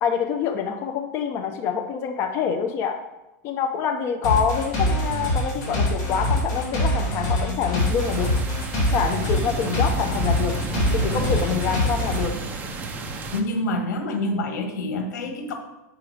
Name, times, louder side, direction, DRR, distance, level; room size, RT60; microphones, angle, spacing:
voice 1, 0.0-3.0 3.4-8.3 8.9-10.6 10.9-12.3, left 7 dB, 25° left, 4 dB, 0.5 m, -26 dB
sound 1, 4.2-12.2, left 1 dB, 45° left, 2.9 m, -24 dB
sound 2, 7.8-13.4, right 3 dB, 15° right, 0.6 m, -31 dB
voice 2, 13.3-15.5, left 1 dB, 80° left, 4 dB, 1.5 m, -27 dB
5.8 x 4.9 x 6.3 m, 0.97 s
supercardioid pair, 165°, 9 cm